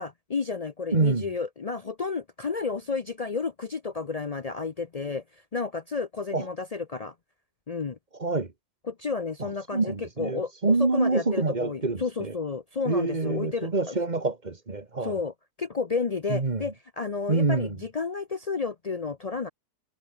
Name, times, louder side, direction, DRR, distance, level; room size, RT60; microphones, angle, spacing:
voice 1, 0.0-5.2 5.5-7.1 7.7-8.0 8.9-14.0 15.0-19.5, left 4 dB, 80° left, 0.3 m, -31 dB
voice 2, 0.9-1.3 6.3-6.4 8.2-8.5 9.4-12.3 12.9-15.2 16.3-16.6 17.3-17.8, right 3 dB, 25° right, 1.7 m, -26 dB
omnidirectional pair, 1.9 m